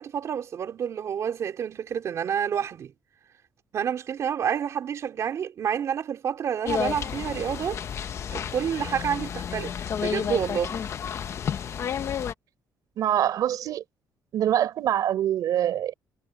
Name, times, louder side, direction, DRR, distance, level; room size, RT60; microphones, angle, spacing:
voice 1, 0.0-2.9 3.7-7.8 8.3-9.7 10.0-10.8, right 8 dB, 45° right, 3.9 m, -29 dB
sound 1, 6.7-12.3, left 8 dB, 40° left, 0.9 m, -31 dB
voice 2, 13.0-13.8 14.3-15.9, right 11 dB, 60° right, 4.4 m, -24 dB
cardioid pair, 160°, 7 cm